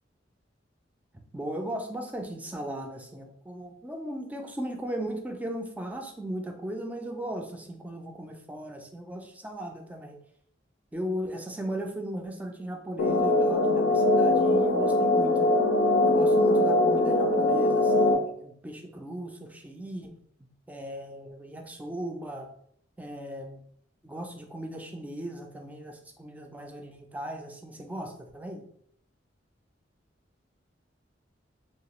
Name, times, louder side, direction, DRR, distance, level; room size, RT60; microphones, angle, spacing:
voice 1, 1.3-10.2 10.9-15.5 16.0-20.1 20.7-22.5 23.0-23.6 24.0-28.6, right 1 dB, 10° right, 3 dB, 0.3 m, -37 dB
sound 1, 13.0-18.1, left 2 dB, 80° left, 0.4 m, -22 dB
2.8 x 2.3 x 3.0 m, 0.66 s
head